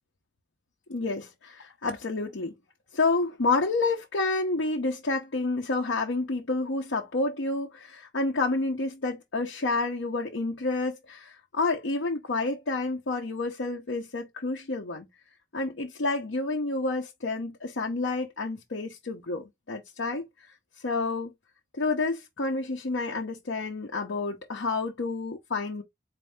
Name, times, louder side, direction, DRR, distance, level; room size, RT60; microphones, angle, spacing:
voice 1, 0.9-2.6 2.9-15.1 15.5-20.3 20.8-21.3 21.7-25.8, left 3 dB, 80° left, 0.7 m, -29 dB
4.2 x 2.6 x 3.4 m
head